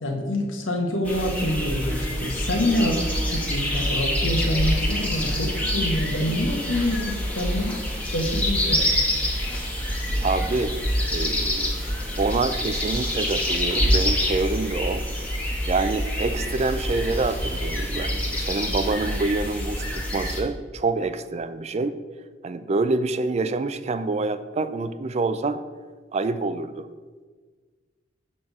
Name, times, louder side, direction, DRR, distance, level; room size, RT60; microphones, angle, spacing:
voice 1, 0.0-3.0 3.3-7.8 8.0-8.9, left 1 dB, 90° left, 2 dB, 1.3 m, -26 dB
sound 1, 1.0-20.4, equal, 5° left, 1.1 m, -26 dB
voice 2, 10.2-10.8 11.1-11.8 12.2-15.0 15.7-22.0 22.4-25.6 26.1-26.9, right 3 dB, 35° right, 11 dB, 0.3 m, -26 dB
6.5 x 4.3 x 6.6 m, 1.5 s
head